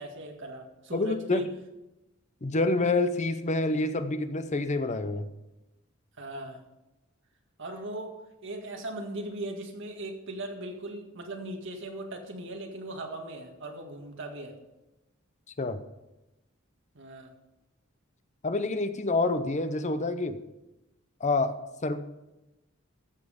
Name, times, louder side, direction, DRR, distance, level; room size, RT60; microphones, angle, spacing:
voice 1, 0.0-1.5 6.2-6.6 7.6-14.5 17.0-17.3, right 1 dB, 65° right, 3 dB, 1.9 m, -39 dB
voice 2, 0.9-1.5 2.4-5.3 15.6-15.8 18.4-20.4 21.2-21.6 21.8-22.0, left 2 dB, 35° left, 11 dB, 0.7 m, -27 dB
14.0 x 7.6 x 5.1 m, 0.99 s
head